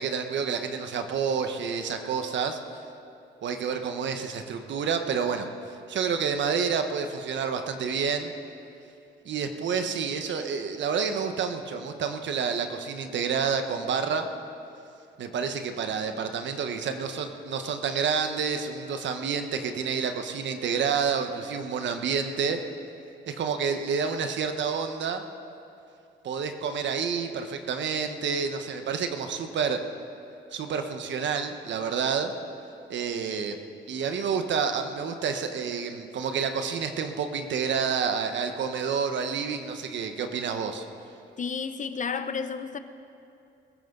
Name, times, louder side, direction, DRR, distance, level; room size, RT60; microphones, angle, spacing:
voice 1, 0.0-2.6 3.4-5.5 5.9-8.3 9.2-14.3 15.2-22.6 23.3-25.2 26.2-29.8 30.5-32.3 32.9-33.6 33.9-40.9, right 6 dB, 65° right, 1.3 m, -29 dB
voice 2, 41.4-42.8, left 5 dB, 40° left, 0.8 m, -31 dB
22.0 x 14.5 x 4.0 m
cardioid pair, 90°, 20 cm